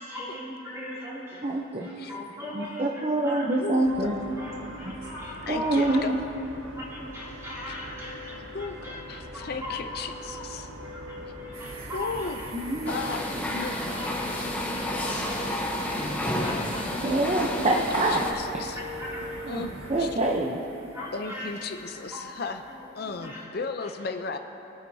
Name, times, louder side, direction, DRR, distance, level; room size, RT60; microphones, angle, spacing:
voice 1, 0.0-1.4 1.8-3.7 4.4-6.0 6.7-10.5 10.8-12.5 13.0-13.2 13.8-14.1 14.5-17.1 18.7-19.4 20.9-21.6 21.9-22.3 22.7-23.5, left 1 dB, 15° right, -8 dB, 2.7 m, -40 dB
voice 2, 1.4-1.9 2.5-4.1 5.5-6.2 12.5-13.1 13.5-13.7 17.0-18.2 19.5-19.6 19.9-20.6, right 2 dB, 30° right, -1 dB, 0.7 m, -26 dB
voice 3, 3.6-4.2 5.5-6.1 7.7-7.8 8.5-10.7 11.9-12.4 12.9-13.3 13.6-13.9 14.3-14.5 16.3-17.2 17.6-18.8 19.5-19.7 20.0-20.2 21.1-22.6 22.9-24.4, left 4 dB, 50° left, 6 dB, 0.5 m, -35 dB
sound 1, 3.8-20.2, equal, 70° right, 1.4 m, -41 dB
sound 2, 11.5-23.4, right 3 dB, 90° right, 1.6 m, -47 dB
sound 3, 12.9-18.3, left 1 dB, 10° left, 0.8 m, -30 dB
22.5 x 9.0 x 2.7 m, 2.9 s
head